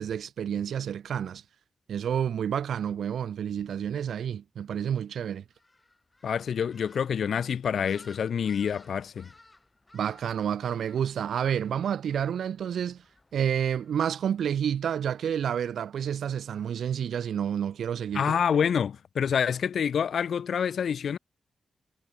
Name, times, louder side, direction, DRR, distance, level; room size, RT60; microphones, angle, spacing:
voice 1, 0.0-1.4 1.9-5.4 9.9-13.0 13.3-18.3, right 8 dB, 80° right, 0.4 m, -29 dB
sound 1, 5.5-14.6, left 2 dB, 15° left, 6.0 m, -58 dB
voice 2, 6.2-9.3 18.1-21.2, left 7 dB, 65° left, 0.6 m, -27 dB
wide cardioid pair, 135°, 0 cm